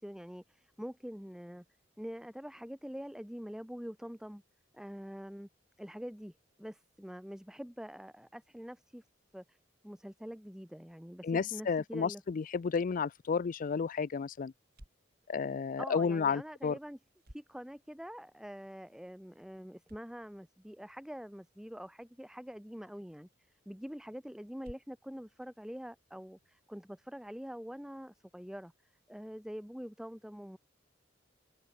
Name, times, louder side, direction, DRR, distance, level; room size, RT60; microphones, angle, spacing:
voice 1, 0.0-1.6 2.0-4.4 4.7-5.5 5.8-9.0 9.3-9.6 9.8-12.2 15.8-17.0 17.3-23.3 23.7-28.7 29.1-30.6, equal, 5° right, 0.8 m, -45 dB
voice 2, 11.2-14.5 15.3-16.8, left 5 dB, 45° left, 0.4 m, -32 dB
sound 1, 13.0-26.6, equal, 55° right, 6.2 m, -63 dB
open air
head